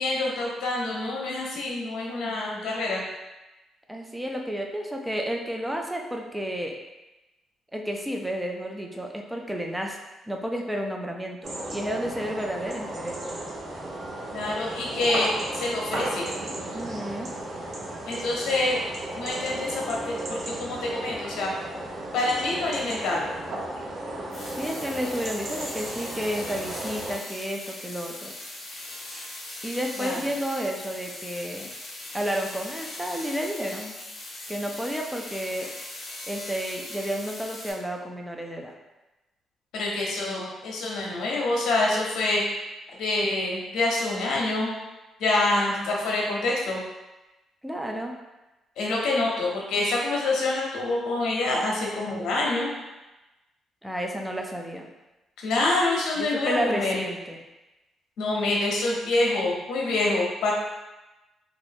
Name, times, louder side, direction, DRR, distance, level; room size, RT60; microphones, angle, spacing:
voice 1, 0.0-3.0 14.3-16.3 18.1-18.8 19.1-21.5 22.1-23.4 30.0-30.2 39.7-42.4 43.0-44.7 45.2-46.8 48.8-52.7 55.4-57.0 58.2-60.5, left 2 dB, 80° left, -2 dB, 0.7 m, -26 dB
voice 2, 3.9-6.7 7.7-10.0 10.3-13.2 16.7-17.3 24.6-28.3 29.6-31.7 32.1-33.9 34.5-35.7 36.3-38.8 47.6-48.1 53.8-54.9 56.2-57.4, equal, 5° right, 2 dB, 0.4 m, -31 dB
sound 1, 11.4-27.1, right 1 dB, 55° right, 0.7 m, -35 dB
sound 2, 24.3-37.7, left 1 dB, 45° left, 0.8 m, -40 dB
2.6 x 2.4 x 3.5 m, 1.1 s
cardioid pair, 90°, 0 cm